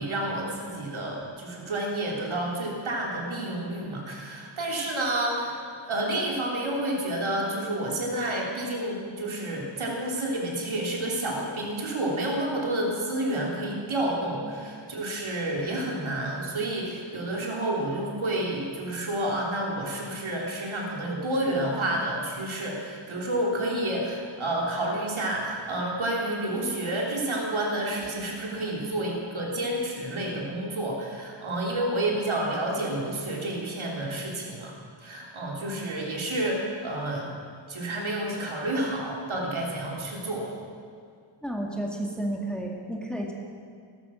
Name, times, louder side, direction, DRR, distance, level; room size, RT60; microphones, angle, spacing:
voice 1, 0.0-5.6 5.9-34.7 35.0-37.3 37.7-40.5, right 1 dB, 70° right, -2 dB, 3.5 m, -30 dB
voice 2, 41.4-43.3, right 1 dB, ahead, 0 dB, 2.0 m, -32 dB
17.0 x 13.5 x 6.3 m, 2.2 s
wide cardioid pair, 110°, 49 cm